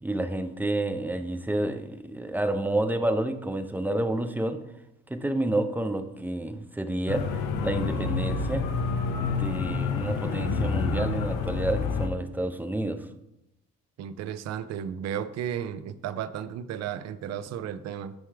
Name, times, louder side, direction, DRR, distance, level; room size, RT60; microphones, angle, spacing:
voice 1, 0.0-4.6 5.1-7.2 7.6-8.7 9.2-13.1, right 1 dB, 5° right, 9 dB, 0.5 m, -29 dB
sound 1, 7.1-12.1, left 4 dB, 80° left, 0.7 m, -28 dB
voice 2, 14.0-18.1, right 9 dB, 60° right, 12 dB, 0.4 m, -34 dB
9.1 x 3.4 x 3.3 m, 0.85 s
cardioid pair, 90°, 30 cm